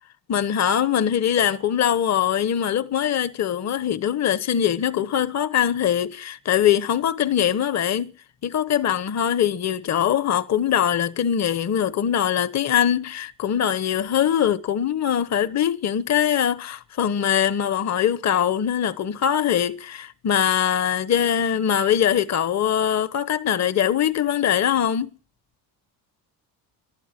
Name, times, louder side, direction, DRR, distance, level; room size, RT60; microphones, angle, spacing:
voice 1, 0.3-8.1 8.4-25.1, left 9 dB, 35° left, 1.2 m, -22 dB
18.5 x 12.0 x 6.0 m
supercardioid pair, 75°, 46 cm